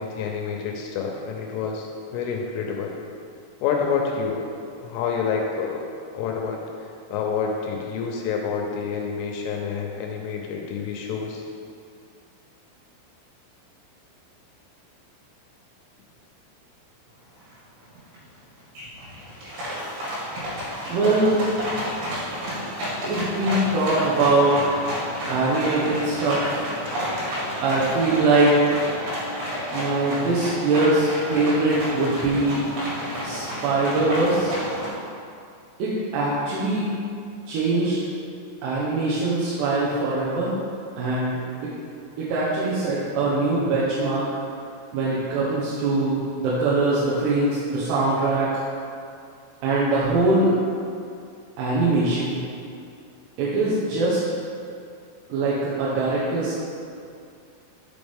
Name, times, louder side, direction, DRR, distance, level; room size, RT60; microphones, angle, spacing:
voice 1, 0.0-2.9 3.6-4.4 4.8-5.9 6.1-6.6 7.1-11.4, left 6 dB, 80° left, 0 dB, 3.1 m, -28 dB
sound 1, 17.5-17.6 18.0-18.4 18.8-34.9, equal, 65° right, 4.1 m, -30 dB
voice 2, 20.9-21.4 23.0-24.6 25.3-26.5 27.6-28.6 29.7-32.6 33.2-34.5 35.8-36.9 37.5-38.0 38.6-40.5 41.0-41.4 42.2-44.3 44.9-48.6 49.6-50.5 51.6-52.4 53.4-54.2 55.3-56.7, right 2 dB, 85° right, -8 dB, 3.9 m, -22 dB
9.3 x 7.1 x 3.5 m, 2.4 s
omnidirectional pair, 6.0 m